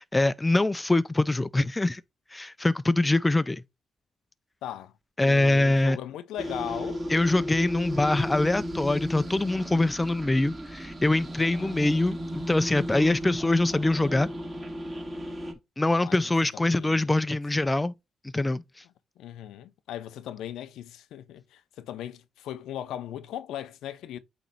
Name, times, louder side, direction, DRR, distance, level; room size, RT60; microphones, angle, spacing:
voice 1, 0.0-2.0 2.3-3.6 5.2-6.0 7.1-14.3 15.8-17.9 18.3-18.6, left 2 dB, 15° left, 0.4 m, -24 dB
voice 2, 4.6-5.0 5.2-7.0 11.6-12.4 15.9-16.2 16.5-17.1 19.2-24.2, left 11 dB, 85° left, 0.6 m, -38 dB
sound 1, 6.4-15.5, equal, 25° right, 2.1 m, -35 dB
8.5 x 3.1 x 3.9 m
cardioid pair, 90°, 0 cm